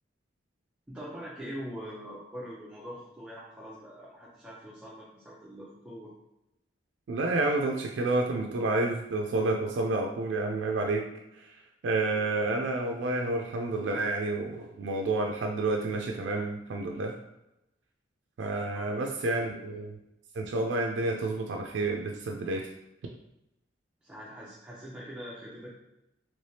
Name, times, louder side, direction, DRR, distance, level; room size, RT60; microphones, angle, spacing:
voice 1, 0.9-6.1 18.7-19.0 19.4-19.7 24.0-25.7, equal, 5° right, -7 dB, 0.5 m, -43 dB
voice 2, 7.1-11.1 11.3-17.2 18.4-19.9 20.3-22.7, right 2 dB, 75° right, 2 dB, 0.3 m, -29 dB
3.3 x 3.1 x 2.7 m, 0.89 s
head